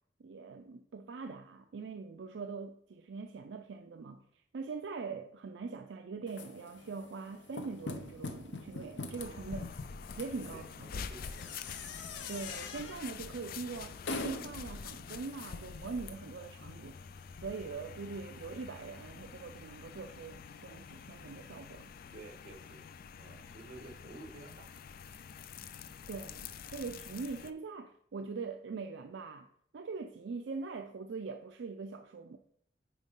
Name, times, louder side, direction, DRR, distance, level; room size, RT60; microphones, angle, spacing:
voice 1, 0.2-9.7 10.2-10.6 12.3-14.0 14.2-17.0 17.4-21.9 26.1-29.5 29.7-32.4, right 4 dB, 75° right, 0.4 m, -42 dB
sound 1, 6.3-16.1, left 3 dB, 75° left, 0.7 m, -45 dB
sound 2, 9.2-27.5, left 6 dB, 55° left, 0.4 m, -47 dB
voice 2, 10.5-12.1 22.1-22.9 23.2-24.7, right 2 dB, 50° right, 1.5 m, -52 dB
9.2 x 4.5 x 3.7 m
head